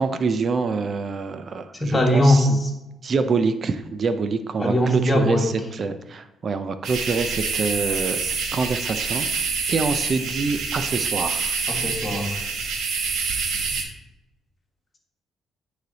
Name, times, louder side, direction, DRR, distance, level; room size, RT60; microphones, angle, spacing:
voice 1, 0.0-2.6 3.0-11.5, right 4 dB, 45° right, 10 dB, 0.4 m, -26 dB
voice 2, 1.8-2.7 4.6-5.5 11.7-12.3, left 1 dB, 20° left, 1 dB, 1.5 m, -20 dB
sound 1, 6.8-13.8, right 5 dB, 80° right, 1.0 m, -27 dB
9.4 x 3.2 x 4.0 m, 0.95 s
cardioid pair, 90°, 0 cm